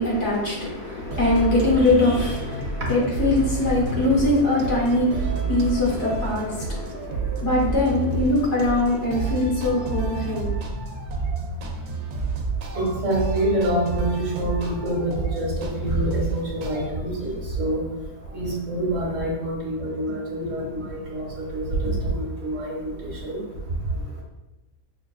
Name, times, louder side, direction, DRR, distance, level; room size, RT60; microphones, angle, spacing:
voice 1, 0.0-10.5, left 2 dB, 55° left, -5 dB, 1.2 m, -22 dB
sound 1, 1.1-16.9, right 3 dB, 85° right, 1.1 m, -30 dB
voice 2, 12.7-17.8 18.3-23.0 23.2-23.4, right 1 dB, 60° right, -4 dB, 1.2 m, -26 dB
6.1 x 2.3 x 2.3 m, 1.0 s
omnidirectional pair, 1.6 m